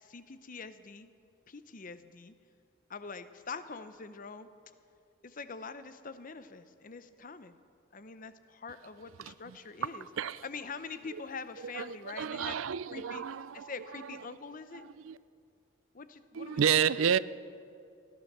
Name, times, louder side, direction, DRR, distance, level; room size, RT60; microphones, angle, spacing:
voice 1, 0.0-1.1 1.5-2.3 2.9-4.5 5.2-7.6 7.9-10.1 10.4-12.6 12.9-13.2 13.5-14.9 15.9-17.1, left 4 dB, 40° left, 12 dB, 0.7 m, -44 dB
voice 2, 9.2-9.6 10.2-10.4 11.7-13.7 14.7-15.2 16.3-17.2, right 8 dB, 85° right, 17 dB, 0.4 m, -30 dB
16.0 x 12.0 x 6.7 m, 2.5 s
head